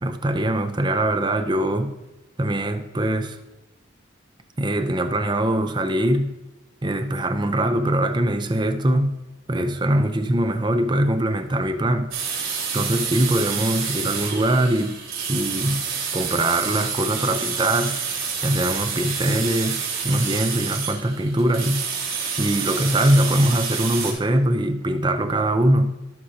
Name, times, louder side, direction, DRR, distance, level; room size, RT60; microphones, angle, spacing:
voice 1, 0.0-1.9 2.4-3.4 4.6-6.3 6.8-9.2 9.5-12.1 12.7-15.0 15.3-15.9 16.1-18.0 18.4-21.8 22.4-25.9, right 1 dB, 20° right, 8 dB, 0.6 m, -22 dB
sound 1, 12.1-24.1, right 6 dB, 90° right, 3.6 m, -28 dB
16.5 x 6.3 x 2.8 m, 1.0 s
head